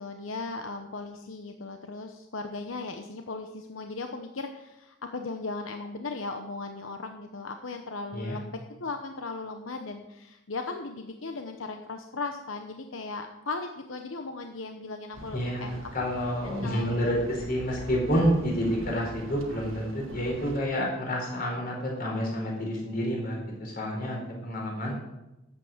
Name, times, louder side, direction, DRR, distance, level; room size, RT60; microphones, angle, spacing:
voice 1, 0.0-15.8 16.4-17.1 24.8-25.1, left 3 dB, 80° left, 5 dB, 0.9 m, -37 dB
sound 1, 15.1-20.6, equal, 80° right, 1.4 m, -43 dB
voice 2, 15.3-25.0, equal, 45° left, -1 dB, 4.8 m, -29 dB
12.0 x 8.2 x 7.3 m, 0.96 s
head